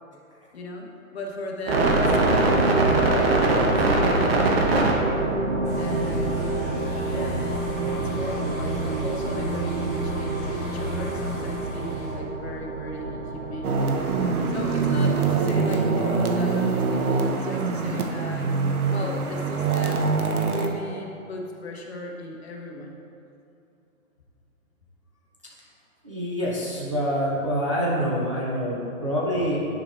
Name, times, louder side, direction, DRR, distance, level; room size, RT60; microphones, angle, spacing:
voice 1, 0.5-4.8 5.8-6.3 7.1-13.8 14.5-18.6 18.9-20.1 20.4-23.0, left 2 dB, 45° left, 0 dB, 1.0 m, -37 dB
sound 1, 1.7-17.3, right 2 dB, 45° right, 1.0 m, -25 dB
sound 2, 5.6-12.1, equal, 5° left, 1.6 m, -33 dB
sound 3, 13.6-20.7, right 4 dB, 90° right, 0.9 m, -24 dB
voice 2, 26.0-29.7, equal, 25° right, -7 dB, 0.4 m, -26 dB
9.8 x 5.5 x 2.4 m, 2.6 s
hypercardioid pair, 150°, 43 cm